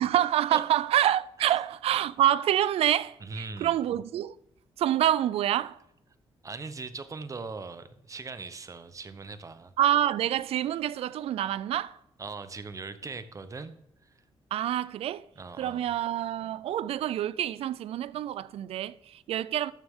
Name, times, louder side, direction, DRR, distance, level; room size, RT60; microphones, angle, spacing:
voice 1, 0.0-4.3 4.8-5.8 9.8-12.0 14.5-15.3 15.6-19.7, right 11 dB, 80° right, 0.4 m, -27 dB
voice 2, 3.2-3.7 6.4-9.7 12.2-13.7 14.0-14.2 15.4-15.9, right 4 dB, 35° right, 0.8 m, -40 dB
13.0 x 6.5 x 3.6 m
cardioid pair, 95°, 10 cm